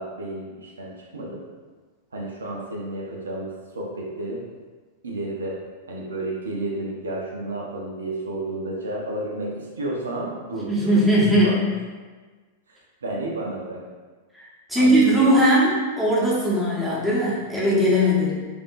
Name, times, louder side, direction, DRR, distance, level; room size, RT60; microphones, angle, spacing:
voice 1, 0.0-1.4 2.1-4.4 5.0-5.6 5.9-11.0 11.4-11.6 12.7-13.8 14.7-15.4, right 2 dB, 80° right, -3 dB, 0.6 m, -31 dB
voice 2, 10.7-11.6 14.3-18.4, equal, 5° right, -7 dB, 1.0 m, -19 dB
3.4 x 2.6 x 2.5 m, 1.4 s
figure-of-eight pair, 95°, 0 cm